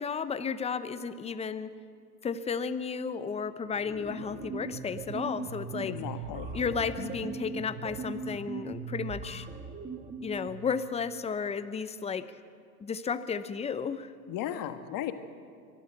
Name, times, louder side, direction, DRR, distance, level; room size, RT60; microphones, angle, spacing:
voice 1, 0.0-1.7 2.2-5.9 6.5-9.5 10.2-12.3 12.8-14.1, left 6 dB, 15° left, 13 dB, 0.7 m, -33 dB
sound 1, 3.6-10.8, right 4 dB, 15° right, 1.6 m, -39 dB
voice 2, 5.8-6.5 14.3-15.1, left 11 dB, 40° left, 9 dB, 1.5 m, -35 dB
23.5 x 12.5 x 8.9 m, 2.2 s
hypercardioid pair, 110°, 48 cm